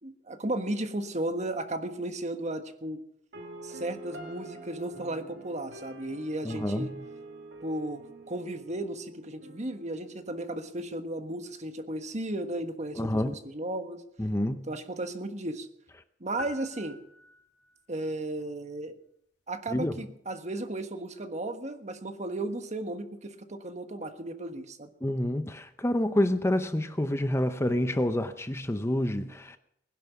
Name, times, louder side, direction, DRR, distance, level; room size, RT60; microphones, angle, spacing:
voice 1, 0.0-3.0 3.6-6.9 7.6-14.0 14.7-15.7 16.2-17.0 17.9-18.9 19.5-24.9, right 1 dB, 40° right, 1.4 m, -35 dB
sound 1, 3.3-11.3, right 1 dB, 65° right, 2.3 m, -47 dB
voice 2, 6.4-7.1 13.0-13.4 14.2-14.7 19.7-19.9 25.0-29.6, left 1 dB, 15° left, 0.7 m, -28 dB
sound 2, 16.4-17.8, left 1 dB, 70° left, 1.7 m, -45 dB
20.5 x 11.0 x 6.1 m
head